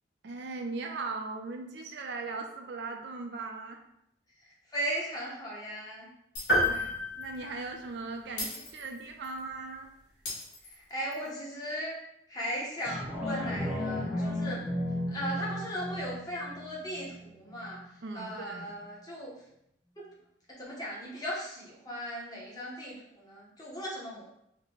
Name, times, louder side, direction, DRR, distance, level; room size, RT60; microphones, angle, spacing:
voice 1, 0.2-3.8 6.6-9.9 18.0-18.8, right 3 dB, 65° right, 3 dB, 0.4 m, -39 dB
voice 2, 4.4-6.1 10.6-11.9 12.3-14.6 15.1-17.8 18.1-19.3 20.0-20.1 20.6-24.2, equal, 20° left, -5 dB, 0.8 m, -37 dB
Shatter, 6.4-6.9 7.2-7.4 8.4-9.4 10.3-11.3, left 2 dB, 80° left, 1.1 m, -40 dB
sound 1, 6.5-8.3, equal, 60° left, 1.3 m, -29 dB
sound 2, 12.8-17.9 18.3-18.4, left 1 dB, 5° right, 0.5 m, -35 dB
3.2 x 2.2 x 3.7 m, 0.78 s
head